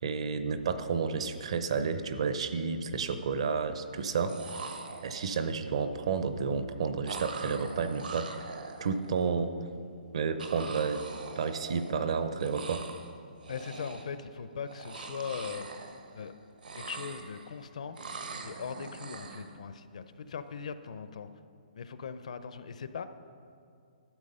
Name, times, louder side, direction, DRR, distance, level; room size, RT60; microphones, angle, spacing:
voice 1, 0.0-4.8 5.0-8.3 8.8-9.5 10.1-11.0 11.4-12.8, right 5 dB, 40° right, 10 dB, 0.6 m, -31 dB
sound 1, 2.0-2.1 2.4-3.0 4.0-4.1 4.3-5.5 7.1-9.3 10.4-12.1 12.4-13.1 13.4-14.2 14.6-16.3 16.6-17.6 18.0-19.5, right 4 dB, 75° right, 1.3 m, -43 dB
voice 2, 13.5-15.8 16.1-16.3 16.7-18.0 18.4-21.3 21.7-23.0, left 6 dB, 50° left, 11 dB, 0.5 m, -40 dB
12.0 x 8.0 x 5.4 m, 2.4 s
hypercardioid pair, 180°, 5 cm